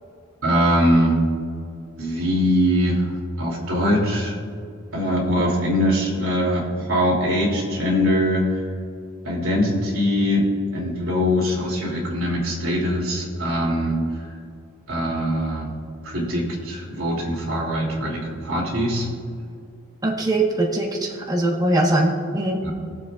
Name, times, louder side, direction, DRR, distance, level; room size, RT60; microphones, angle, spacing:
voice 1, 0.4-1.2 2.0-4.3 4.9-8.6 9.2-14.3 14.9-15.7 16.0-19.1 22.6-22.7, equal, 85° right, -3 dB, 2.9 m, -22 dB
voice 2, 20.0-22.6, right 1 dB, 20° right, -2 dB, 1.2 m, -21 dB
20.0 x 7.6 x 2.4 m, 2.3 s
head